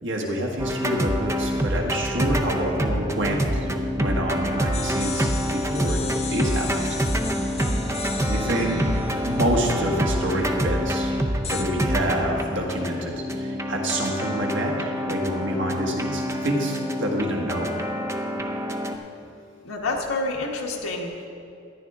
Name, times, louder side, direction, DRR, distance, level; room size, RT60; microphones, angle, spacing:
voice 1, 0.0-3.6 4.0-6.0 6.3-7.6 8.2-8.8 9.2-11.1 11.5-17.7, right 1 dB, 60° right, -1 dB, 1.7 m, -27 dB
sound 1, 0.6-19.0, equal, 15° right, 0.5 m, -26 dB
sound 2, 4.7-10.4 11.4-11.6, left 6 dB, 30° left, 0.8 m, -37 dB
voice 2, 19.6-21.3, left 2 dB, 85° left, -1 dB, 1.4 m, -29 dB
13.5 x 11.0 x 3.6 m, 2.6 s
head